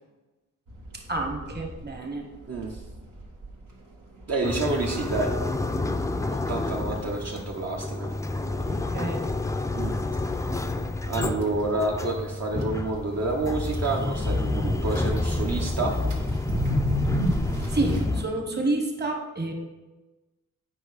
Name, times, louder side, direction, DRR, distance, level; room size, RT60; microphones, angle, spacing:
sound 1, 0.7-18.0, equal, 85° right, 1.7 m, -36 dB
voice 1, 1.1-2.2 8.7-9.3 17.7-19.5, right 2 dB, 35° right, 3 dB, 1.3 m, -29 dB
voice 2, 2.5-2.8 4.3-5.3 6.5-8.1 9.7-10.0 11.1-16.0, right 3 dB, 55° right, -1 dB, 0.9 m, -29 dB
sound 2, 4.4-18.2, left 2 dB, 10° left, 0.4 m, -29 dB
8.9 x 5.4 x 4.8 m, 1.1 s
wide cardioid pair, 140°, 31 cm